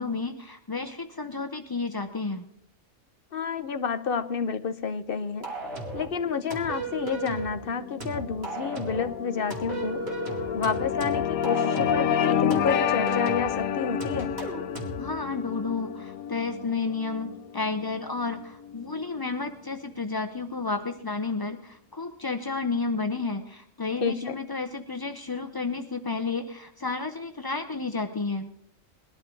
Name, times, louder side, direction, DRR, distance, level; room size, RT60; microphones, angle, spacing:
voice 1, 0.0-2.4 15.0-28.5, left 4 dB, 25° left, 7 dB, 0.5 m, -31 dB
voice 2, 3.3-5.5 5.9-10.0 10.5-14.3 24.0-24.4, left 6 dB, 50° left, 11 dB, 0.8 m, -29 dB
sound 1, 5.4-6.1 6.5-7.6 8.0-9.1 9.5-12.1 12.5-13.6 14.0-15.0, right 3 dB, 50° right, 3.0 m, -35 dB
sound 2, 6.5-19.1, left 9 dB, 80° left, 1.1 m, -30 dB
21.0 x 13.0 x 3.8 m, 0.71 s
omnidirectional pair, 1.4 m